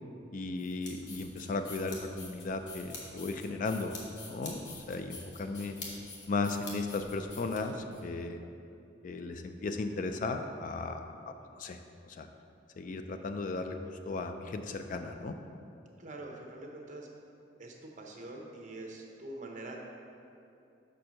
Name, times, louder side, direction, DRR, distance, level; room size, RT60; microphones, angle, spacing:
voice 1, 0.3-3.9 4.3-5.8 6.3-8.4 9.0-11.1 11.6-11.8 12.1-12.3 12.8-15.3, left 3 dB, 45° left, 7 dB, 0.3 m, -36 dB
sound 1, 0.6-8.0, left 3 dB, 70° left, 1.2 m, -46 dB
voice 2, 16.0-17.1 17.6-19.8, right 2 dB, 45° right, 0 dB, 0.8 m, -44 dB
5.5 x 4.4 x 6.3 m, 2.6 s
head